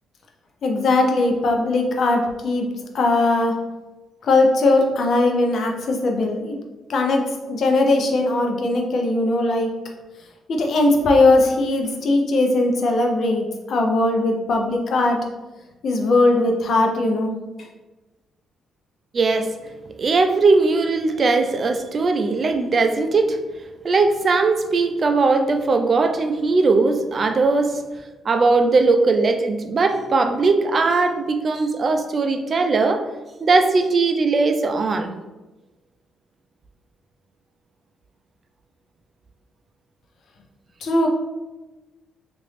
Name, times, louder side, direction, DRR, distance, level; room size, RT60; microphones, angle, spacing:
voice 1, 0.6-2.7 2.9-3.6 4.2-6.6 6.9-9.7 10.5-15.2 15.8-17.3 17.6-17.7 40.8-41.1, left 2 dB, 60° left, 2 dB, 0.6 m, -19 dB
voice 2, 19.1-19.5 20.0-23.4 23.8-27.8 28.2-33.1 33.4-35.1, right 3 dB, 40° right, 7 dB, 0.4 m, -19 dB
3.0 x 2.5 x 3.2 m, 1.1 s
cardioid pair, 90°, 0 cm